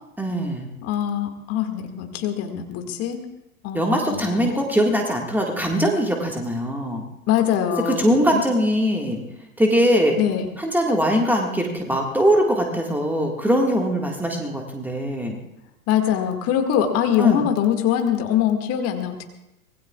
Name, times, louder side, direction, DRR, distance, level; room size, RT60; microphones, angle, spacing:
voice 1, 0.2-0.7 3.7-7.0 7.8-9.2 9.6-10.2 10.6-15.4 17.2-17.4, equal, 5° right, 1 dB, 1.8 m, -21 dB
voice 2, 0.8-3.2 3.6-4.5 7.3-8.4 10.2-10.5 15.9-19.2, left 10 dB, 35° left, 5 dB, 2.0 m, -23 dB
25.0 x 20.5 x 2.4 m, 0.88 s
figure-of-eight pair, 100°, 44 cm